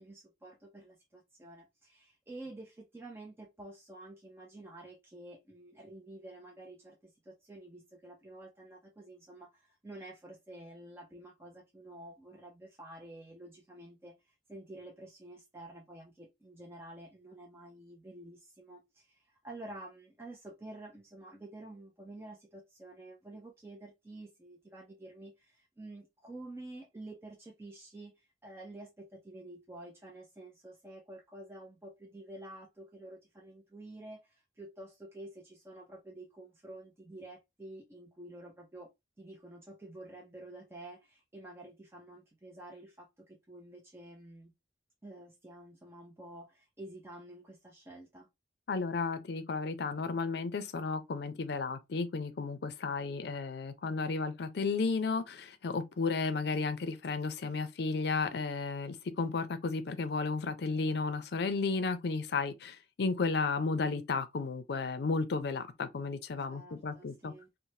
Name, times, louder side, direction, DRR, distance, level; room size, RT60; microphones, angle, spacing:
voice 1, 0.0-44.5 45.0-48.3 66.5-67.5, right 1 dB, 15° right, 0.4 m, -50 dB
voice 2, 48.7-67.3, left 4 dB, 65° left, 0.5 m, -33 dB
3.1 x 2.1 x 2.6 m
head